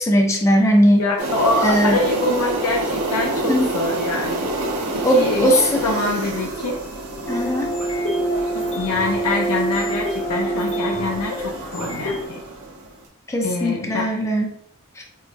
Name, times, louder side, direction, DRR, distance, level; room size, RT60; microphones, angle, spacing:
voice 1, 0.0-1.0 1.6-2.0 3.5-3.7 5.0-5.8 7.3-7.7 13.3-14.5, equal, 15° left, 2 dB, 0.4 m, -18 dB
voice 2, 0.9-4.5 4.9-6.8 8.7-12.4 13.4-14.2, left 2 dB, 90° left, 1 dB, 0.5 m, -25 dB
sound 1, 1.2-13.0, right 1 dB, 75° right, 0.8 m, -28 dB
sound 2, 7.2-12.2, right 1 dB, 60° left, 1.0 m, -25 dB
4.5 x 2.3 x 2.5 m, 0.68 s
head